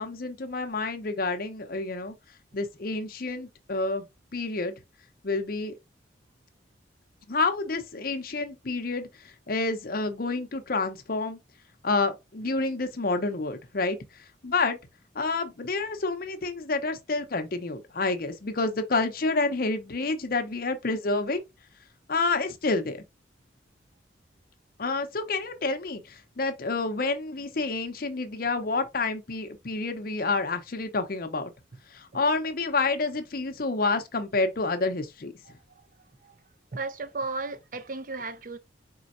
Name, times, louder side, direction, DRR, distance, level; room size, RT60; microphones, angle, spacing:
voice 1, 0.0-2.1 2.5-4.1 4.3-4.7 5.2-5.7 7.3-11.4 11.8-14.0 14.4-14.8 15.1-21.4 22.1-23.0 24.8-31.5 31.9-35.3, left 3 dB, 50° left, 0.7 m, -29 dB
voice 2, 35.5-35.9 36.2-36.4 36.7-38.6, right 3 dB, 45° right, 0.5 m, -35 dB
4.3 x 3.8 x 2.5 m
head